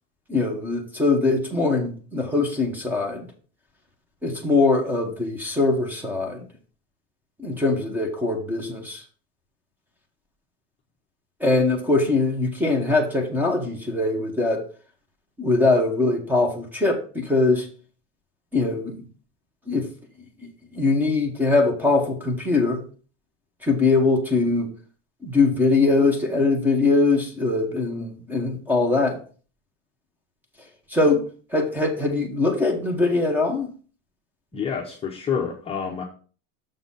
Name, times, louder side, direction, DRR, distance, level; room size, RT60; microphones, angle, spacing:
voice 1, 0.3-3.3 4.2-6.4 7.4-9.0 11.4-14.6 15.4-17.7 18.5-19.0 19.7-19.9 20.7-22.8 23.6-24.7 25.2-29.2 30.9-31.2 31.5-33.7, left 3 dB, 5° right, 3 dB, 1.2 m, -22 dB
voice 2, 34.5-36.0, left 7 dB, 20° left, -1 dB, 0.9 m, -28 dB
6.6 x 3.9 x 5.6 m, 0.40 s
supercardioid pair, 150°, 32 cm